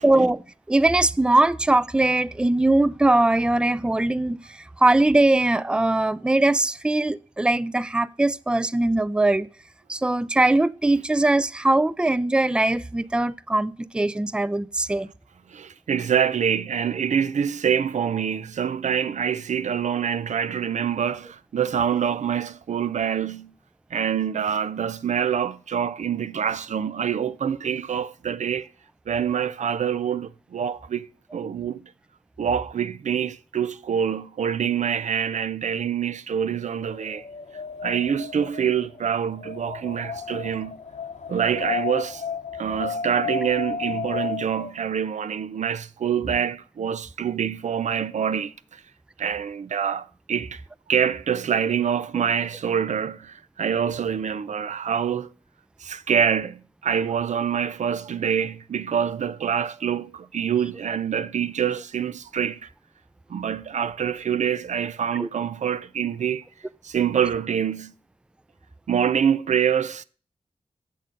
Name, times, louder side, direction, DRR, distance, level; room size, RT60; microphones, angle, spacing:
voice 1, 0.0-9.5 9.9-15.1 65.2-65.3, right 2 dB, 10° right, 0.4 m, -21 dB
voice 2, 15.5-23.5 23.9-28.7 29.1-31.8 32.4-37.3 37.8-40.8 41.3-42.3 42.6-48.8 49.2-50.6 50.9-55.3 55.8-62.7 63.3-66.4 66.8-67.9 68.9-70.0, right 8 dB, 90° right, 0.5 m, -25 dB
Wind, 36.8-44.7, left 6 dB, 80° left, 0.9 m, -33 dB
7.6 x 6.5 x 5.1 m
wide cardioid pair, 65°, 12 cm